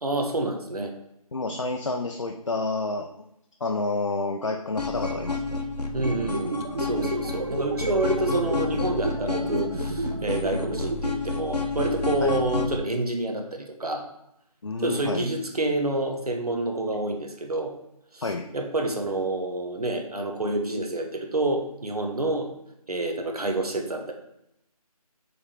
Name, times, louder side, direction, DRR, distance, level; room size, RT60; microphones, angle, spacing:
voice 1, 0.0-0.9 5.9-14.1 14.8-17.7 18.1-18.2 18.5-22.5 22.9-24.1, right 2 dB, 70° right, 3 dB, 1.4 m, -28 dB
voice 2, 1.3-3.1 3.6-5.6 12.2-12.4 14.6-15.3 18.2-18.5, left 3 dB, 50° left, 3 dB, 0.5 m, -29 dB
sound 1, 4.8-12.8, left 3 dB, 85° left, 1.1 m, -30 dB
sound 2, 6.0-11.0, right 2 dB, 45° right, 0.5 m, -32 dB
6.5 x 3.6 x 4.9 m, 0.80 s
figure-of-eight pair, 170°, 20 cm